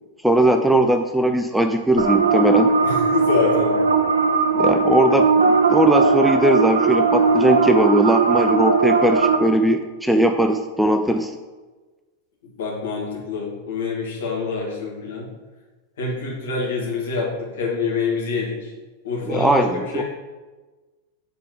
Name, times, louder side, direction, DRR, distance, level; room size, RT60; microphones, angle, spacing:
voice 1, 0.2-2.7 4.6-11.3 19.3-20.0, right 1 dB, 5° right, 6 dB, 0.4 m, -19 dB
sound 1, 2.0-9.4, right 4 dB, 70° right, 0.7 m, -18 dB
voice 2, 2.8-3.8 12.4-15.3 16.0-18.7 19.0-20.0, left 4 dB, 60° left, -3 dB, 2.4 m, -26 dB
8.5 x 4.5 x 4.7 m, 1.3 s
figure-of-eight pair, 90°, 0 cm